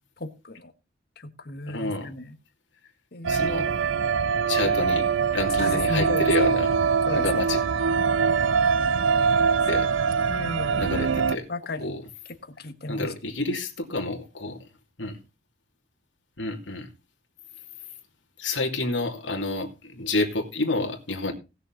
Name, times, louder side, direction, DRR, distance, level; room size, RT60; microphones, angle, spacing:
voice 1, 0.2-0.7 1.2-2.3 3.1-3.7 5.5-6.3 7.1-7.4 9.7-10.9 11.5-11.9 12.6-13.1, left 2 dB, 55° left, 9 dB, 1.4 m, -35 dB
voice 2, 1.7-2.1 3.3-3.8 4.5-6.8 7.1-7.6 9.7-9.9 10.8-11.5 11.8-12.0 12.9-14.6 15.0-15.2 16.4-16.9 18.4-21.3, left 2 dB, 75° left, 2 dB, 2.7 m, -29 dB
sound 1, 3.2-11.4, right 5 dB, 85° right, 0.6 m, -23 dB
18.5 x 6.9 x 4.0 m, 0.29 s
head